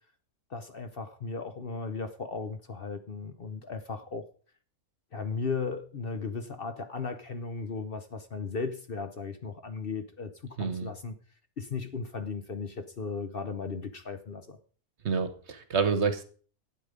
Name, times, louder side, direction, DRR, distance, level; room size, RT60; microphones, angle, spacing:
voice 1, 0.5-4.2 5.1-11.2 11.6-14.6, left 4 dB, 45° left, 1.0 m, -36 dB
voice 2, 10.6-10.9 15.0-16.2, right 5 dB, 50° right, 1.3 m, -28 dB
12.0 x 8.7 x 5.1 m
omnidirectional pair, 1.5 m